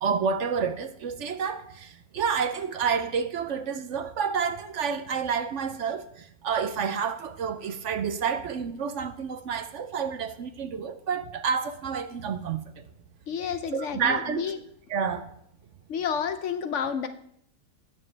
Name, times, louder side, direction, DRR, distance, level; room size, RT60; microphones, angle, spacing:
voice 1, 0.0-12.8 13.7-14.5 14.9-15.3, right 6 dB, 65° right, 0.9 m, -29 dB
voice 2, 13.3-14.6 15.9-17.1, left 7 dB, 65° left, 0.9 m, -30 dB
18.5 x 7.2 x 3.3 m
omnidirectional pair, 1.5 m